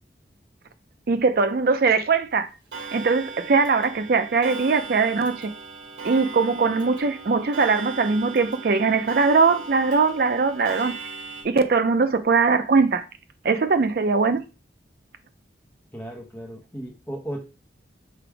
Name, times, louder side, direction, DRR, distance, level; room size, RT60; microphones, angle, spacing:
voice 1, 1.1-2.5 2.9-5.5 6.0-10.9 11.4-13.0 13.4-14.4, right 4 dB, 55° right, 0.5 m, -21 dB
Clock, 2.7-11.4, right 4 dB, 85° right, 1.5 m, -38 dB
voice 2, 15.9-17.4, right 1 dB, 10° left, 0.9 m, -35 dB
3.4 x 3.0 x 4.7 m
head